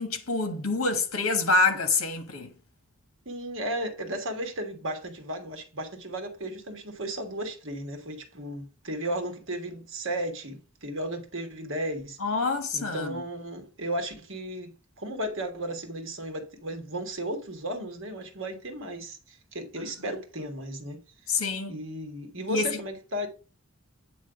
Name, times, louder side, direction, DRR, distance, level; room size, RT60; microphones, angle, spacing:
voice 1, 0.0-2.5 12.2-13.2 19.8-20.2 21.3-21.7 22.5-22.8, left 3 dB, 70° left, 1.5 m, -27 dB
voice 2, 3.2-12.2 12.7-21.0 21.3-21.4 21.7-23.3, right 1 dB, 60° right, 1.5 m, -35 dB
8.8 x 3.2 x 5.0 m
head